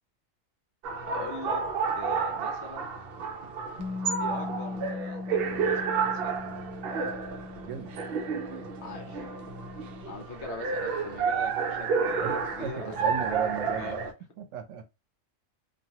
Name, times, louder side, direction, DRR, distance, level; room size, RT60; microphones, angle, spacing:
sound 1, 0.8-14.1, right 5 dB, 60° right, 0.7 m, -31 dB
voice 1, 1.0-1.6 1.9-2.9 4.2-6.3 8.8-9.2 10.1-13.1 13.7-14.0, left 4 dB, 65° left, 1.0 m, -42 dB
Bass guitar, 3.8-10.0, left 3 dB, ahead, 1.5 m, -40 dB
voice 2, 7.6-8.0 12.2-14.1 14.4-14.8, right 8 dB, 80° right, 1.0 m, -36 dB
3.0 x 2.3 x 2.7 m
omnidirectional pair, 1.3 m